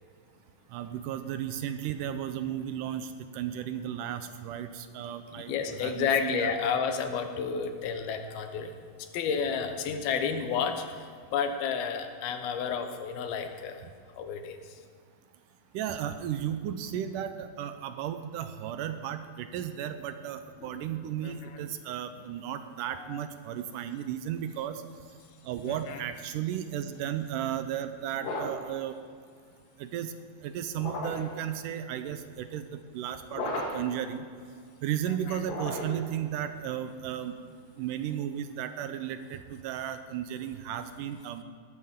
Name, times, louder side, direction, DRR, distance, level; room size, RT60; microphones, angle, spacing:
voice 1, 0.7-3.1 3.3-5.5 5.8-6.5 15.7-24.8 25.5-29.0 29.8-30.1 30.4-32.6 32.9-34.2 34.8-37.4 37.8-41.4, right 10 dB, 80° right, 9 dB, 2.0 m, -34 dB
voice 2, 5.3-13.8 14.1-14.8 20.6-20.7 21.2-21.6 22.9-23.2 25.7-26.0 35.3-35.4, left 6 dB, 85° left, 6 dB, 2.9 m, -31 dB
sound 1, 28.2-28.7 30.7-31.4 33.3-34.0 35.4-36.1, left 1 dB, 65° left, 3.3 m, -35 dB
18.5 x 13.5 x 3.7 m, 2.1 s
omnidirectional pair, 4.2 m